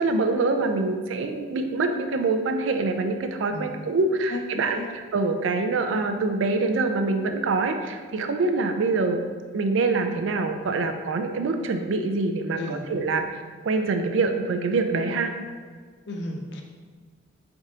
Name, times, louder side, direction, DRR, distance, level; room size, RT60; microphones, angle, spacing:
voice 1, 0.0-9.3 9.5-13.3 13.6-15.3, right 3 dB, 75° right, 6 dB, 0.4 m, -25 dB
voice 2, 4.3-4.8 12.6-12.8 16.1-16.6, left 2 dB, 60° left, 2 dB, 0.5 m, -33 dB
4.8 x 3.4 x 2.8 m, 1.6 s
head